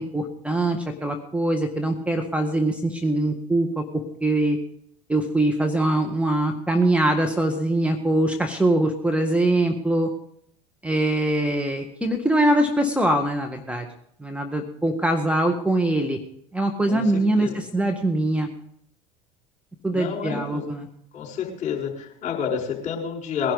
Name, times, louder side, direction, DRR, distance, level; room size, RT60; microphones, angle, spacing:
voice 1, 0.0-4.6 5.1-10.1 10.8-13.9 14.2-16.2 16.5-18.5 19.8-20.9, right 1 dB, 5° right, 4 dB, 1.8 m, -23 dB
voice 2, 19.9-20.6 21.1-23.5, left 7 dB, 45° left, -1 dB, 5.1 m, -29 dB
21.0 x 11.5 x 4.2 m, 0.69 s
hypercardioid pair, 75°, 18 cm